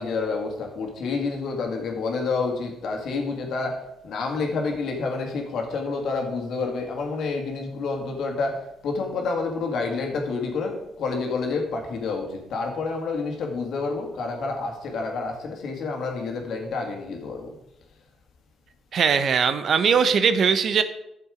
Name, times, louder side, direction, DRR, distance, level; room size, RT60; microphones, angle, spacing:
voice 1, 0.0-17.5, left 4 dB, 70° left, 2 dB, 2.1 m, -29 dB
voice 2, 18.9-20.8, right 6 dB, 60° right, 11 dB, 0.8 m, -20 dB
9.8 x 6.8 x 5.0 m, 0.84 s
cardioid pair, 90°, 0 cm